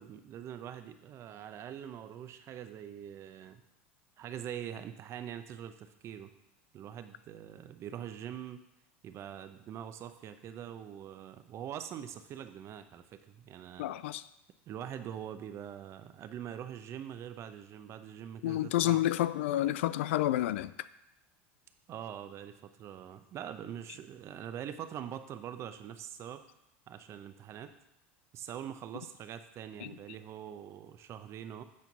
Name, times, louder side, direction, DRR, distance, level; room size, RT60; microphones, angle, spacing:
voice 1, 0.0-3.6 4.2-6.3 6.7-8.6 9.0-13.9 14.7-19.0 21.9-26.4 26.9-27.7 28.3-31.6, right 9 dB, 45° right, 0.8 m, -43 dB
voice 2, 13.8-14.2 18.4-20.7 29.8-29.9, left 14 dB, 75° left, 0.4 m, -29 dB
8.6 x 4.5 x 5.4 m
hypercardioid pair, 90°, 7 cm